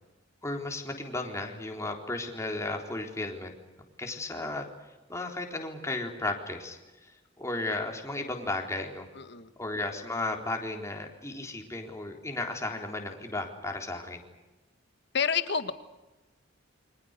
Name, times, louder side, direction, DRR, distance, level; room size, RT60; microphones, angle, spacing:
voice 1, 0.4-3.5 4.0-4.7 5.1-6.8 7.4-9.1 9.6-14.2, left 2 dB, 15° left, 2 dB, 3.9 m, -34 dB
voice 2, 9.1-9.5 15.1-15.7, left 6 dB, 60° left, 10 dB, 1.7 m, -28 dB
29.5 x 25.0 x 6.7 m, 1.1 s
head